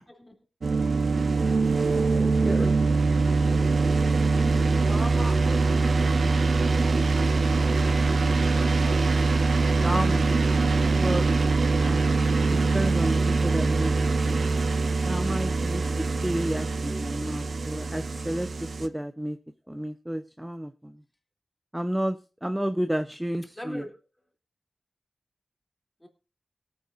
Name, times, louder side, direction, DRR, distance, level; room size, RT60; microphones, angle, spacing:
sound 1, 0.6-18.9, right 3 dB, 80° right, 0.9 m, -23 dB
voice 1, 1.9-2.7 9.8-10.3 11.0-11.2 11.8-12.1 12.5-14.4 15.0-18.5 18.8-19.4 19.7-20.9 21.7-23.8, right 1 dB, 10° right, 0.8 m, -31 dB
voice 2, 2.6-3.1 4.8-6.2 16.9-17.2 19.7-19.8 23.6-24.0 26.0-26.1, left 1 dB, 10° left, 3.0 m, -40 dB
22.5 x 9.6 x 2.6 m
wide cardioid pair, 70°, 0 cm